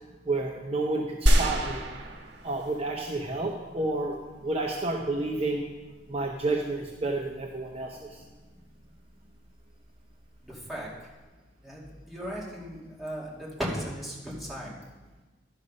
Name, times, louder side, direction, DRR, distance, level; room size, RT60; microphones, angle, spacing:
voice 1, 0.3-1.8 2.4-4.2 4.4-5.6 6.1-8.2, right 2 dB, 35° right, 0 dB, 0.8 m, -30 dB
sound 1, 1.3-3.0 3.5-3.6, equal, 75° right, 1.3 m, -25 dB
voice 2, 12.1-13.3 13.6-14.2 14.4-14.7, equal, ahead, -5 dB, 2.3 m, -35 dB
11.0 x 6.7 x 5.4 m, 1.2 s
head